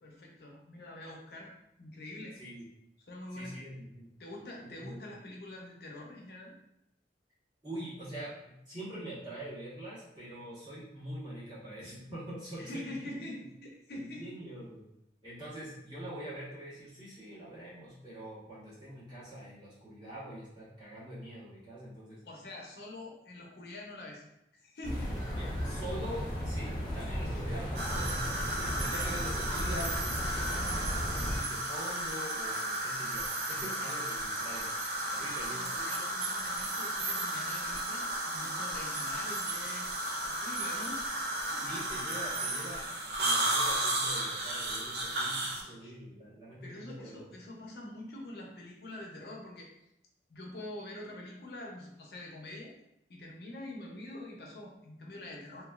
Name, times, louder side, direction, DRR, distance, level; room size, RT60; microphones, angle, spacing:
voice 1, 0.0-1.5 1.8-2.4 3.0-3.6 4.2-6.5 12.6-14.4 22.2-24.2 24.6-25.2 28.7-29.0 33.8-33.9 35.2-39.9 40.2-41.0 41.5-41.7 45.6-45.9 46.6-49.7 50.3-52.7 53.1-55.7, left 1 dB, 65° left, -1 dB, 0.6 m, -45 dB
voice 2, 3.3-4.1 4.6-5.0 7.6-13.3 13.9-14.8 15.2-22.2 25.4-28.2 28.6-34.7 35.1-35.9 41.5-47.2, right 1 dB, 25° right, -9 dB, 1.1 m, -44 dB
sound 1, 24.8-31.4, equal, 25° left, 0.6 m, -35 dB
sound 2, 27.8-45.6, right 1 dB, 60° right, 0.4 m, -34 dB
3.0 x 2.3 x 2.3 m, 0.81 s
head